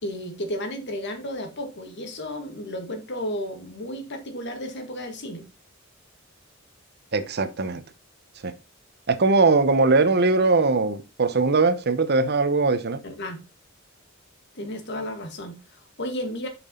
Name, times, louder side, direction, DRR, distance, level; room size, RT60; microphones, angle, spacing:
voice 1, 0.0-5.4 13.0-13.4 14.6-16.5, equal, 60° left, 1.8 m, -33 dB
voice 2, 7.1-7.8 8.4-8.5 9.1-13.0, right 3 dB, 55° right, 0.9 m, -20 dB
7.0 x 6.1 x 3.8 m
head